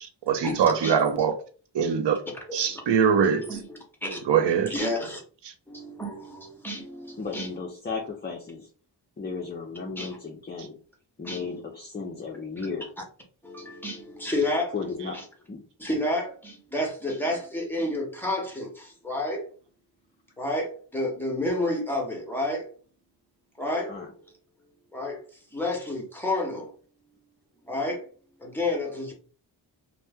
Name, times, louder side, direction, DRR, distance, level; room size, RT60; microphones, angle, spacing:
voice 1, 0.0-1.4 1.7-2.2 2.5-3.6 4.2-4.9 7.4-7.5 10.6-10.7, right 7 dB, 65° right, 0.6 m, -23 dB
voice 2, 0.8-1.3 2.5-2.6 3.2-4.2 4.7-5.2 5.7-7.5 10.0-10.2 11.2-11.6 13.4-14.7 15.1-15.2 15.8-19.5 20.4-22.7 23.6-24.1 24.9-25.2 25.5-26.7 27.7-28.1 28.4-29.1, left 1 dB, 5° left, 0.8 m, -30 dB
voice 3, 7.2-8.7 9.2-10.8 11.2-12.9 14.7-15.2 15.5-15.6 23.8-24.1, left 4 dB, 25° left, 0.4 m, -34 dB
2.8 x 2.1 x 3.4 m
wide cardioid pair, 145°, 45 cm